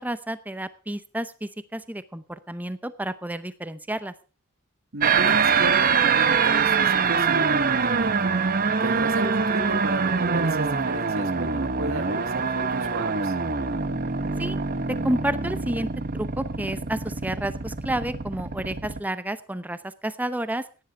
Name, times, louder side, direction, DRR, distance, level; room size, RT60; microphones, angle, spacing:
voice 1, 0.0-4.1 14.4-14.6 14.9-15.9 16.1-20.7, right 1 dB, 10° right, 14 dB, 0.7 m, -30 dB
voice 2, 4.9-8.4 8.8-13.3, right 1 dB, 65° right, 9 dB, 1.5 m, -33 dB
sound 1, 5.0-19.0, right 5 dB, 40° right, 0.9 m, -24 dB
16.5 x 10.5 x 4.6 m, 0.35 s
head